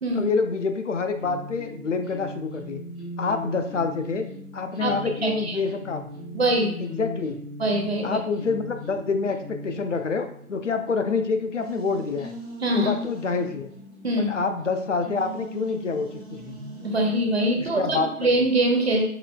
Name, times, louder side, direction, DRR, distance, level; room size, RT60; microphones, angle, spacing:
voice 1, 0.1-2.8 3.2-4.3 4.5-6.1 6.8-7.4 8.0-12.3 12.7-13.7 14.2-16.6 17.5-18.4, left 4 dB, 55° left, 7 dB, 0.5 m, -27 dB
sound 1, 1.2-18.4, equal, 10° right, 0.9 m, -40 dB
voice 2, 5.2-5.6 6.3-6.7 7.6-8.2 12.6-12.9 14.0-14.3 16.8-19.0, right 1 dB, 45° right, 2 dB, 0.8 m, -23 dB
5.0 x 3.1 x 2.2 m, 0.63 s
hypercardioid pair, 170°, 44 cm